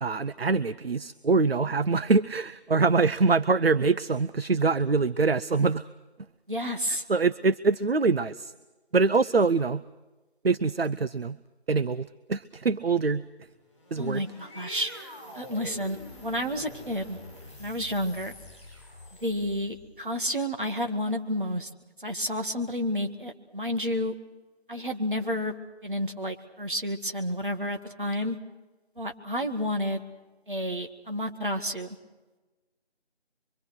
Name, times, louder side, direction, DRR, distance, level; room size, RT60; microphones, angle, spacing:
voice 1, 0.0-5.8 7.1-8.5 8.9-9.8 10.4-11.4 11.7-13.2 13.9-14.2, right 4 dB, 65° right, 16 dB, 0.7 m, -24 dB
voice 2, 6.5-7.0 14.0-14.9 15.3-17.2 17.6-18.4 19.2-21.7 22.0-24.1 24.7-25.6 25.8-28.4 29.0-30.0 30.5-32.0, equal, 50° right, 4 dB, 2.2 m, -30 dB
sound 1, 13.6-19.9, left 1 dB, ahead, 7.4 m, -46 dB
25.0 x 24.5 x 6.2 m, 1.2 s
figure-of-eight pair, 170°, 32 cm